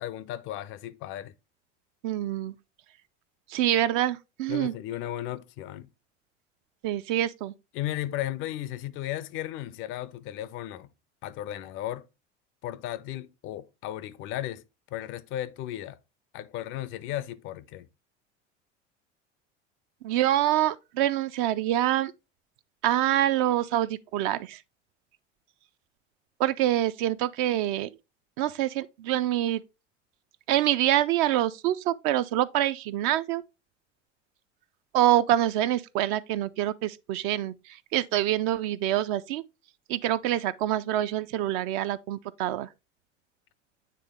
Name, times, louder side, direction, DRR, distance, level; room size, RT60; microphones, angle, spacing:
voice 1, 0.0-1.3 4.5-5.9 7.7-10.9 11.2-12.1 12.6-14.6 14.9-16.0 16.3-17.9, left 13 dB, 35° left, 0.4 m, -35 dB
voice 2, 2.0-2.5 3.5-4.7 6.8-7.5 20.0-22.1 22.8-24.6 26.4-27.9 28.4-29.6 30.5-33.4 34.9-39.4 39.9-42.7, right 13 dB, 45° right, 0.4 m, -26 dB
9.1 x 3.3 x 3.3 m
figure-of-eight pair, 70°, 36 cm